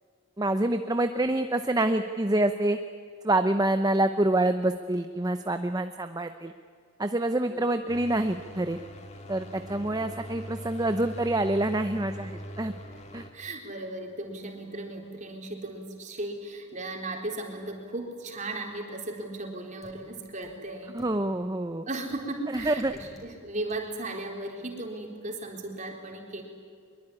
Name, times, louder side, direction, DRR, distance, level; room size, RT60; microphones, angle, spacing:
voice 1, 0.4-2.8 3.2-6.5 7.0-8.8 9.3-12.7 13.1-13.2 20.9-21.9 22.5-22.9, right 1 dB, 20° right, 8 dB, 0.7 m, -26 dB
sound 1, 7.9-13.3, equal, 35° left, 2.2 m, -42 dB
voice 2, 9.6-10.0 13.3-21.0 21.9-26.4, right 2 dB, 35° right, 2 dB, 3.9 m, -36 dB
sound 2, 19.8-19.9 20.4-20.5 21.0-21.1 22.1-22.2 22.5-23.2 23.7-23.8, right 1 dB, ahead, 5.7 m, -50 dB
23.5 x 23.0 x 9.9 m, 2.3 s
head